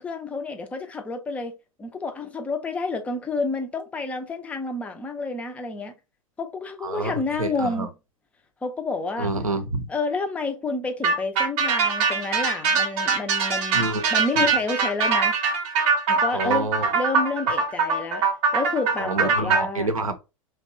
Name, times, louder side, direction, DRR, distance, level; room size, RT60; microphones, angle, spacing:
voice 1, 0.0-1.5 1.8-5.9 6.4-7.9 8.6-9.3 9.9-15.4 16.1-18.3 18.5-19.9, left 3 dB, 10° left, 0.4 m, -29 dB
voice 2, 6.8-7.1 7.4-7.9 9.2-9.9 13.7-14.0 16.3-16.9 19.0-20.2, right 2 dB, 80° right, 0.6 m, -27 dB
sound 1, 11.0-19.6, right 5 dB, 35° right, 0.7 m, -22 dB
2.9 x 2.1 x 3.8 m
figure-of-eight pair, 95°, 17 cm